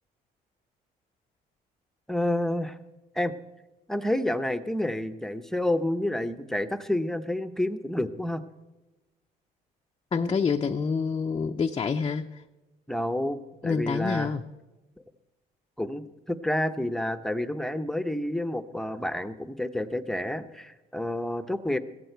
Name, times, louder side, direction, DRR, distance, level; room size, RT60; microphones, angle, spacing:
voice 1, 2.1-2.8 3.1-3.3 3.9-8.4 12.9-14.3 15.8-21.8, left 1 dB, 5° left, 9 dB, 0.8 m, -29 dB
voice 2, 10.1-12.4 13.6-14.5, left 5 dB, 30° left, 3 dB, 0.6 m, -27 dB
16.0 x 15.0 x 4.5 m, 1.1 s
cardioid pair, 110°, 17 cm